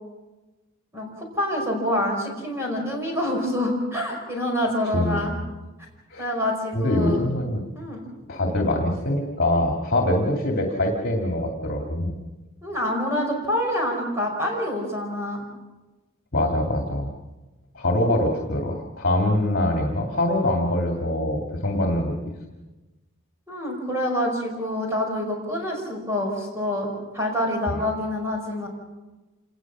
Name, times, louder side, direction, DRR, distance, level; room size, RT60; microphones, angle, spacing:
voice 1, 0.9-5.3 6.2-7.2 7.7-8.0 12.6-15.4 23.5-26.9 27.1-28.7, left 1 dB, 15° right, 0 dB, 5.3 m, -26 dB
voice 2, 4.9-5.4 6.1-6.3 6.7-7.6 8.3-12.1 16.3-17.1 17.7-22.1 27.7-27.8, left 1 dB, 50° left, 1 dB, 2.5 m, -24 dB
27.0 x 20.0 x 6.2 m, 1.1 s
head